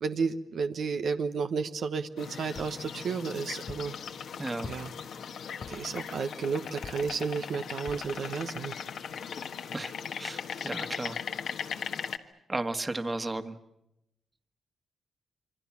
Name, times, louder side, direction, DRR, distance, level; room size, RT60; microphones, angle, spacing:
voice 1, 0.0-4.0 4.6-4.9 5.7-8.7, right 5 dB, 70° right, 7 dB, 1.2 m, -32 dB
sound 1, 2.2-12.2, left 7 dB, 80° left, 1.6 m, -39 dB
sound 2, 2.6-2.9 3.7-4.0 4.6-5.0 5.6-5.9 6.8-7.2 7.9-8.2 8.7-8.8 9.1-9.2, left 5 dB, 45° left, 0.9 m, -44 dB
voice 2, 4.4-4.7 9.7-9.9 10.2-11.2 12.5-13.5, right 2 dB, 25° right, 8 dB, 1.7 m, -34 dB
27.0 x 24.5 x 7.3 m, 0.85 s
cardioid pair, 80°, 0 cm